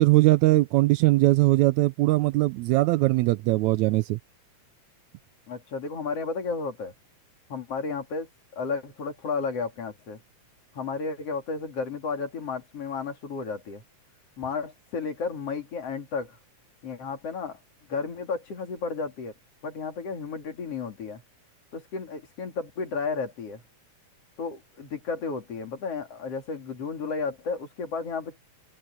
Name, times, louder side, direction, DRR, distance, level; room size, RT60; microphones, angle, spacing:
voice 1, 0.0-4.2, right 19 dB, 80° right, 1.8 m, -20 dB
voice 2, 5.5-6.9 7.5-10.2 10.7-13.8 14.4-16.4 16.8-17.6 17.9-19.3 19.6-21.2 21.7-23.6 24.4-28.4, left 4 dB, 50° left, 3.7 m, -33 dB
omnidirectional pair, 3.5 m